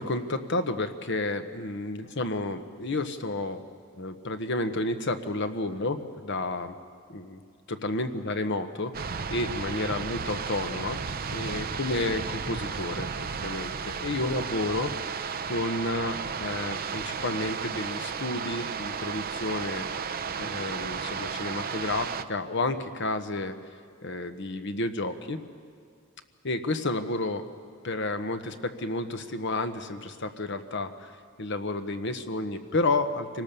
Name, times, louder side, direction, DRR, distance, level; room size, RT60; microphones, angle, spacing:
voice 1, 0.0-3.6 4.0-6.8 7.1-7.4 7.7-8.9 9.3-11.0 11.3-13.1 13.4-15.2 15.5-19.9 20.4-23.5 24.0-25.4 26.4-27.4 27.8-31.1 31.4-33.4, left 2 dB, 60° left, 8 dB, 1.2 m, -31 dB
sound 1, 8.9-22.2, right 6 dB, 45° right, 0.7 m, -34 dB
25.5 x 18.5 x 6.9 m, 2.3 s
head